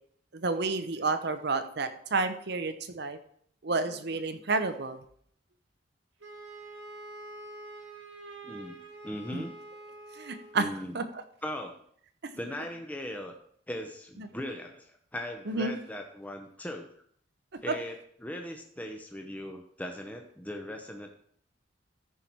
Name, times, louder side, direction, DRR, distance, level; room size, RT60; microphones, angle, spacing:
voice 1, 0.3-3.2 3.6-5.0 9.3-9.4 10.2-10.7 10.9-11.2 12.2-12.3 14.2-14.3 15.5-15.8 17.5-17.8, right 3 dB, 60° right, 10 dB, 0.8 m, -30 dB
Wind instrument woodwind instrument, 6.2-10.6, right 2 dB, 75° right, 2.0 m, -46 dB
voice 2, 8.4-8.8 9.0-9.5 10.5-11.0 11.4-11.8 12.4-13.3 13.7-16.9 17.6-21.1, equal, 10° left, 3 dB, 0.9 m, -39 dB
14.0 x 5.7 x 4.6 m, 0.62 s
head